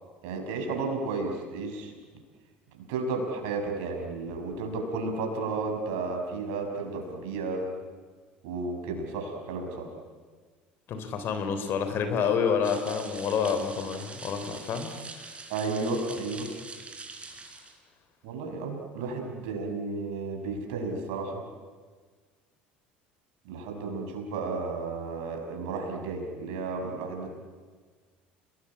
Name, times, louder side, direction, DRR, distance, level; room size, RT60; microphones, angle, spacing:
voice 1, 0.2-1.9 2.9-7.7 8.4-9.9 15.5-16.5 18.2-21.4 23.4-27.3, right 3 dB, 65° right, 3 dB, 6.1 m, -33 dB
voice 2, 10.9-15.3, left 6 dB, 50° left, 8 dB, 3.5 m, -28 dB
sound 1, 12.6-17.8, right 3 dB, 25° right, 4.9 m, -44 dB
30.0 x 19.5 x 8.7 m, 1.5 s
hypercardioid pair, 65°, 5 cm